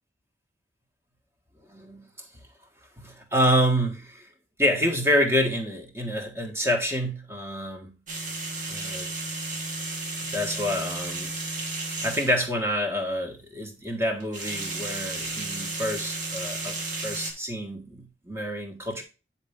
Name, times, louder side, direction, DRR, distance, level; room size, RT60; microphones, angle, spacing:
voice 1, 1.7-2.0 3.0-4.3 4.6-8.0 8.7-9.1 10.3-11.3 12.0-19.0, equal, 15° right, 1.4 m, -27 dB
sound 1, 8.1-12.4 14.2-17.3, right 2 dB, 45° right, 1.6 m, -33 dB
9.1 x 4.3 x 3.5 m
head